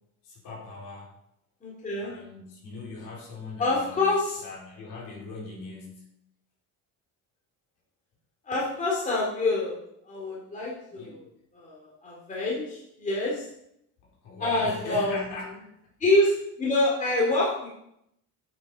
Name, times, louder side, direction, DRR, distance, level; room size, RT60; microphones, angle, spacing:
voice 1, 0.2-1.1 2.0-4.2 4.4-6.1 10.9-11.2 14.2-15.9, left 3 dB, 60° left, -3 dB, 3.7 m, -40 dB
voice 2, 1.6-2.1 3.6-4.4 8.4-9.8 10.0-11.3 11.5-13.4 14.4-15.2 16.0-17.7, left 2 dB, 20° left, -4 dB, 2.4 m, -26 dB
8.6 x 8.3 x 4.2 m, 0.77 s
cardioid pair, 155°, 35 cm